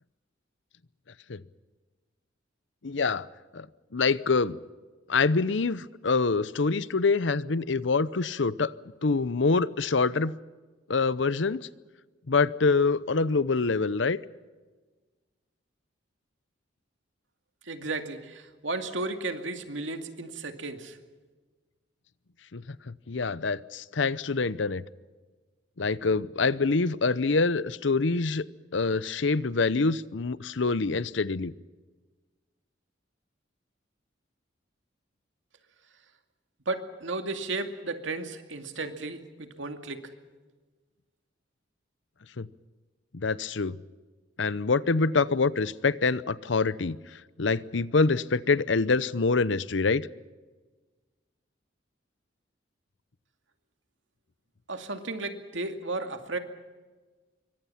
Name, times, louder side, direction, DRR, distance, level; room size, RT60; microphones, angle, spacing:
voice 1, 2.8-3.3 3.5-3.7 3.9-4.6 5.1-8.7 9.0-10.4 10.9-11.7 12.3-14.2 22.5-24.8 25.8-28.4 28.7-31.5 42.4-42.5 43.1-43.8 44.4-47.0 47.4-50.1, left 4 dB, 70° left, 18 dB, 0.8 m, -25 dB
voice 2, 17.6-21.0 36.7-40.1 54.7-56.4, right 3 dB, 80° right, 6 dB, 2.4 m, -34 dB
26.5 x 24.0 x 5.8 m, 1.3 s
head